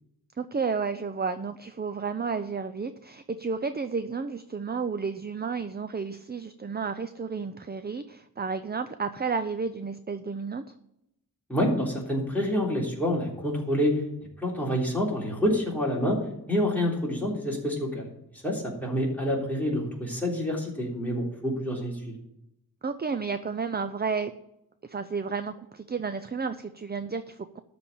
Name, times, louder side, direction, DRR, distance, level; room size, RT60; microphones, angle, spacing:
voice 1, 0.4-10.7 22.8-24.3 24.8-27.6, right 5 dB, 25° right, 10 dB, 0.5 m, -32 dB
voice 2, 11.5-13.9 14.4-16.2 16.5-18.1 18.4-22.2, equal, 5° left, -3 dB, 3.5 m, -27 dB
12.5 x 4.4 x 8.1 m, 0.82 s
wide cardioid pair, 85°, 38 cm